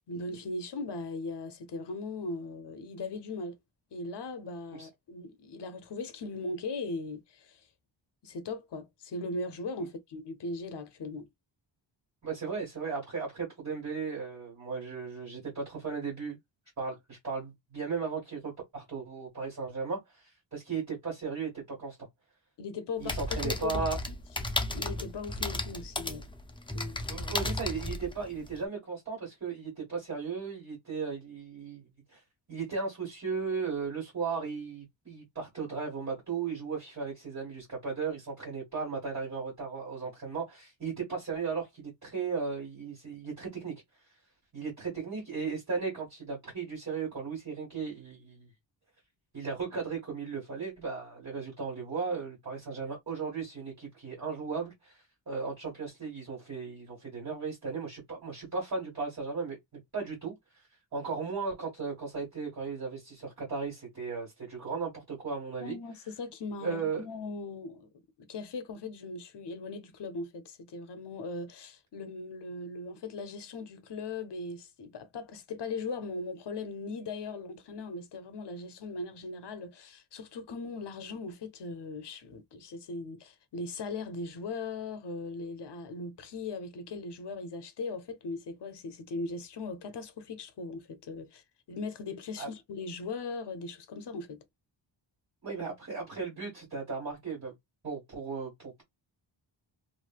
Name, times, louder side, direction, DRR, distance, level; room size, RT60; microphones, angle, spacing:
voice 1, 0.1-3.6 3.9-7.7 8.2-11.3 22.6-24.1 24.7-26.3 26.7-27.3 65.6-67.9 68.2-91.4 91.7-94.4, left 3 dB, 60° left, 0.7 m, -39 dB
voice 2, 12.2-16.4 16.8-22.0 23.0-24.0 27.1-31.8 32.1-32.2 32.5-43.7 44.5-48.5 49.3-59.6 59.9-60.3 60.9-65.8 66.6-67.0 92.4-92.5 95.4-97.5 97.8-98.8, right 5 dB, 35° right, 1.6 m, -36 dB
sound 1, 23.0-28.6, left 2 dB, 10° left, 0.4 m, -34 dB
3.1 x 2.6 x 2.4 m
wide cardioid pair, 160°, 48 cm